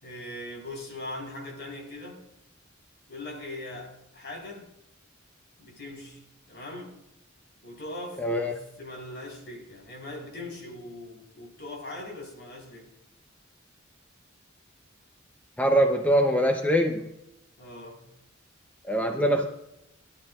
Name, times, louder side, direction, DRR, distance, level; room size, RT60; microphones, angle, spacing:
voice 1, 0.0-2.2 3.1-4.7 5.6-7.0 7.6-12.9 17.6-18.1, left 1 dB, 55° left, 4.0 m, -40 dB
voice 2, 8.2-8.6 15.6-17.1 18.9-19.5, equal, 10° left, 0.7 m, -23 dB
17.5 x 11.5 x 2.4 m
head